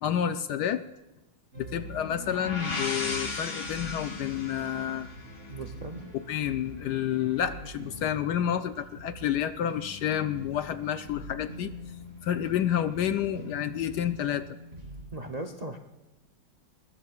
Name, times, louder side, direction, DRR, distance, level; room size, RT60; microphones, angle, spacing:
voice 1, 0.0-0.8 1.6-5.1 6.1-11.7 12.2-14.5, left 10 dB, 70° left, 10 dB, 1.0 m, -29 dB
sound 1, 1.5-15.1, equal, 30° right, 4.5 m, -45 dB
sound 2, 2.0-5.8, left 3 dB, 40° left, 1.8 m, -36 dB
voice 2, 5.5-6.0 15.1-15.8, right 2 dB, 60° right, 5 dB, 0.4 m, -37 dB
21.0 x 21.0 x 2.4 m, 1.0 s
omnidirectional pair, 2.2 m